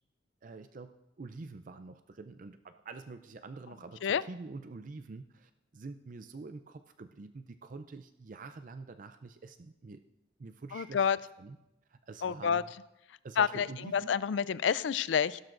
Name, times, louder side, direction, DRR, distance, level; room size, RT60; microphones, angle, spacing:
voice 1, 0.4-10.0 10.4-11.6 11.9-12.7 13.2-14.2, right 3 dB, 45° right, 9 dB, 0.4 m, -46 dB
voice 2, 10.7-11.2 12.2-12.6 13.4-13.7 13.9-15.4, left 7 dB, 70° left, 17 dB, 0.4 m, -28 dB
16.5 x 12.0 x 2.6 m, 0.94 s
head